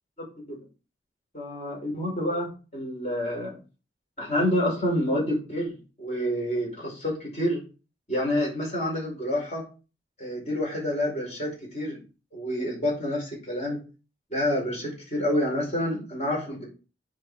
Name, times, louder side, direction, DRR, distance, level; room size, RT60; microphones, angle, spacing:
voice 1, 1.3-2.5 2.7-3.6 4.2-7.6 8.1-9.6 10.2-12.0 12.3-13.8 14.3-16.6, left 1 dB, 40° left, -2 dB, 5.2 m, -28 dB
7.7 x 5.2 x 4.9 m, 0.33 s
head